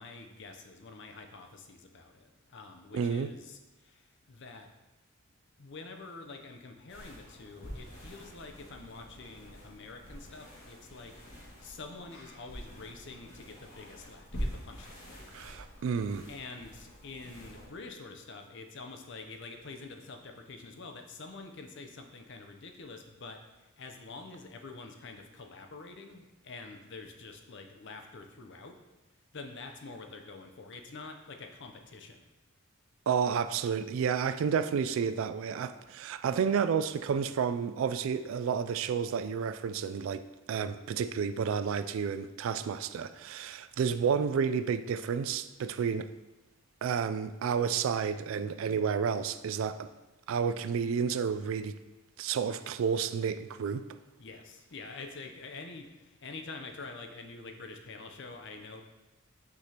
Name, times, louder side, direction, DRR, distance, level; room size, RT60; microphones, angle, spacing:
voice 1, 0.0-4.7 5.6-11.1 11.6-15.1 16.3-28.7 29.3-32.2 54.2-58.8, left 3 dB, 55° left, 0.6 m, -47 dB
voice 2, 2.9-3.3 15.3-16.3 33.1-40.2 40.5-46.1 46.8-49.9 50.3-51.8 52.2-53.8, right 6 dB, 70° right, 0.3 m, -31 dB
sound 1, 6.9-17.7, equal, 85° left, 1.9 m, -45 dB
6.0 x 5.9 x 2.9 m
head